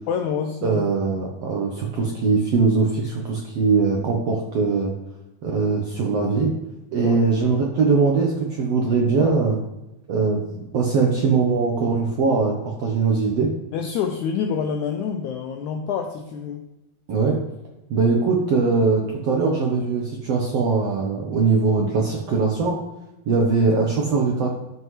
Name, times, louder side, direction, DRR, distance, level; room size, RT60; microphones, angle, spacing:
voice 1, 0.1-0.8 7.0-7.2 13.7-16.7, left 7 dB, 85° left, 4 dB, 1.7 m, -27 dB
voice 2, 0.6-4.9 5.4-6.5 6.9-9.6 10.1-13.5 17.1-17.4 17.9-22.8 23.3-24.5, right 4 dB, 75° right, 0 dB, 1.4 m, -21 dB
13.0 x 5.6 x 3.2 m, 0.96 s
omnidirectional pair, 4.1 m